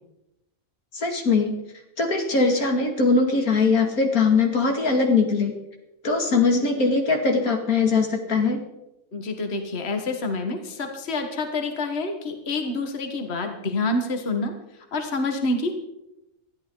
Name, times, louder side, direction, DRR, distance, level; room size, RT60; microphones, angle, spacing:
voice 1, 0.9-1.5 2.0-5.5 6.0-8.6, left 4 dB, 85° left, 3 dB, 2.8 m, -21 dB
voice 2, 9.1-14.5 14.9-15.7, left 2 dB, 50° left, 5 dB, 1.8 m, -27 dB
20.5 x 13.5 x 3.9 m, 0.91 s
omnidirectional pair, 1.5 m